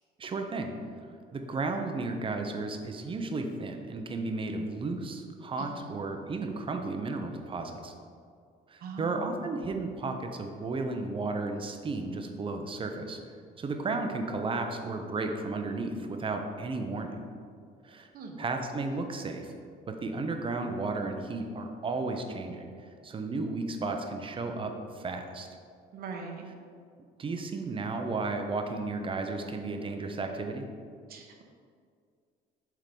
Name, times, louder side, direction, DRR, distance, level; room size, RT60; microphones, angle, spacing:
voice 1, 0.2-0.7 1.3-7.9 8.7-13.2 13.6-17.2 17.8-18.1 18.4-19.5 19.9-22.7 23.0-25.5 27.2-30.7, right 3 dB, 30° right, 5 dB, 0.8 m, -33 dB
voice 2, 5.6-5.9 8.8-9.3 18.1-18.4 25.9-26.4 31.1-31.4, right 4 dB, 60° right, 2 dB, 1.1 m, -41 dB
7.5 x 3.8 x 5.3 m, 2.2 s
cardioid pair, 110°, 17 cm